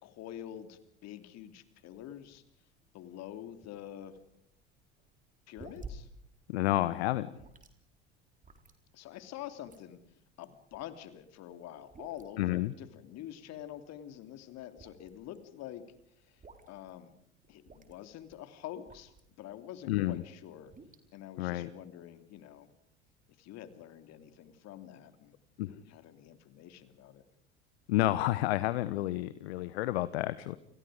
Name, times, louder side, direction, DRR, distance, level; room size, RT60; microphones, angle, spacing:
voice 1, 0.0-2.4 2.9-4.2 5.5-6.1 8.9-10.0 10.4-17.1 17.5-20.7 21.1-22.7 23.4-25.3 25.9-27.2, left 11 dB, 45° left, 9 dB, 3.0 m, -47 dB
sound 1, 1.3-19.5 19.9-21.1, right 3 dB, 20° right, 4.2 m, -54 dB
voice 2, 6.5-7.3 12.4-12.7 19.9-20.2 21.4-21.7 25.6-25.8 27.9-30.6, left 16 dB, 65° left, 16 dB, 1.1 m, -30 dB
29.5 x 28.0 x 5.1 m, 0.72 s
figure-of-eight pair, 70°, 35 cm